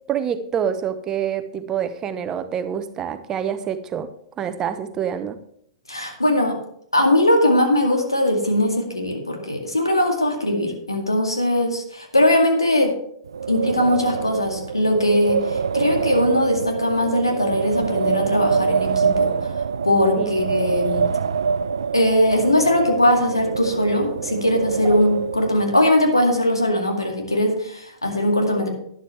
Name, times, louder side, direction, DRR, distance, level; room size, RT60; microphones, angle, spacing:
voice 1, 0.1-4.1 4.4-5.4 20.1-20.3 24.8-25.0, right 8 dB, 25° right, 11 dB, 0.8 m, -26 dB
voice 2, 5.9-6.5 6.9-12.9 13.5-21.0 21.9-28.7, left 1 dB, 85° left, 3 dB, 2.0 m, -20 dB
Wind, 13.2-25.9, right 6 dB, 70° right, 0.4 m, -25 dB
12.0 x 10.5 x 3.3 m, 0.69 s
figure-of-eight pair, 105°, 2 cm